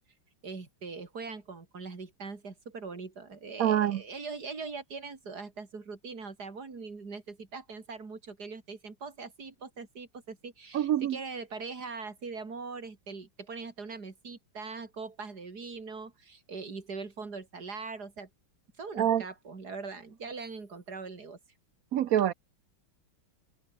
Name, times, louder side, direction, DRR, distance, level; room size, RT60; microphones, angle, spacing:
voice 1, 0.4-18.3 18.8-21.4, right 4 dB, 50° right, 3.9 m, -41 dB
voice 2, 3.6-4.0 10.7-11.2 19.0-19.2 21.9-22.3, right 11 dB, 70° right, 0.8 m, -25 dB
open air
omnidirectional pair, 2.2 m